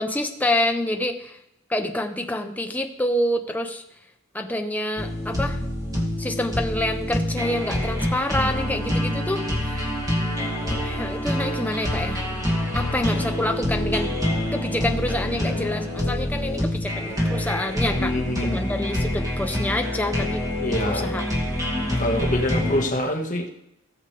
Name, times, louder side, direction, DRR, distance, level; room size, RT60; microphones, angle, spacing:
voice 1, 0.0-1.4 1.7-3.8 4.3-5.6 6.2-10.0 10.6-12.3 12.7-14.1 14.5-18.1 18.4-20.4 20.8-21.6, left 1 dB, 10° left, 4 dB, 0.8 m, -27 dB
sound 1, 5.0-22.9, left 1 dB, 15° right, 2.4 m, -26 dB
voice 2, 17.9-18.7 20.6-21.1 22.0-23.5, left 1 dB, 35° left, 1 dB, 1.6 m, -25 dB
18.0 x 7.3 x 3.4 m, 0.82 s
head